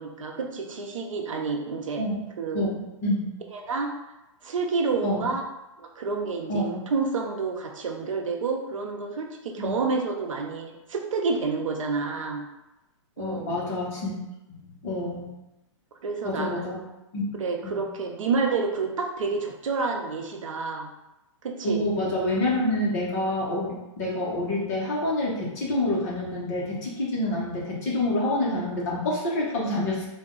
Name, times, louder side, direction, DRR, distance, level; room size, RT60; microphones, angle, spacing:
voice 1, 0.0-2.0 2.4-2.6 3.5-3.9 4.4-5.4 5.8-12.4 13.2-13.5 16.0-16.8 17.3-20.9 21.4-21.9 29.5-29.7, right 4 dB, 85° right, 2 dB, 0.7 m, -29 dB
voice 2, 3.0-3.3 5.0-5.2 6.5-6.8 9.6-9.8 13.2-14.1 14.5-15.4 16.2-16.8 17.1-17.3 17.6-17.7 21.6-30.1, left 1 dB, 30° left, -5 dB, 0.9 m, -27 dB
3.4 x 2.2 x 3.7 m, 0.96 s
hypercardioid pair, 170°, 16 cm